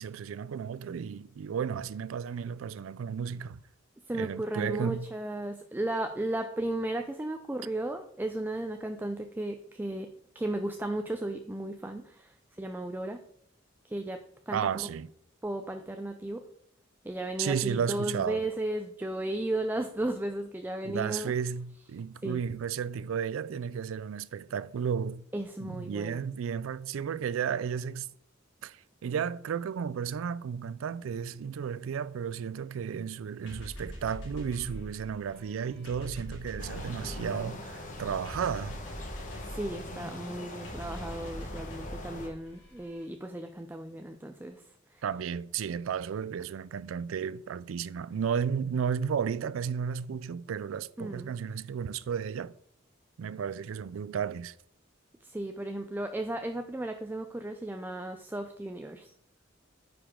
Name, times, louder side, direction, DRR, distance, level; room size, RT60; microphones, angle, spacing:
voice 1, 0.0-3.6 4.1-5.1 14.5-15.1 17.4-18.5 20.8-25.2 25.6-28.1 28.6-38.8 45.0-52.5 53.2-54.5, right 7 dB, 85° right, 0.4 m, -33 dB
voice 2, 4.1-10.1 10.4-12.3 12.6-13.2 13.8-14.9 15.4-16.5 17.0-21.3 22.2-22.4 25.3-26.2 39.5-44.6 44.9-45.0 51.0-51.3 55.2-59.1, right 1 dB, 10° right, 0.4 m, -35 dB
sound 1, 33.5-43.0, equal, 65° left, 3.1 m, -44 dB
sound 2, 36.6-42.3, left 1 dB, 40° left, 1.3 m, -42 dB
9.5 x 5.1 x 3.7 m
head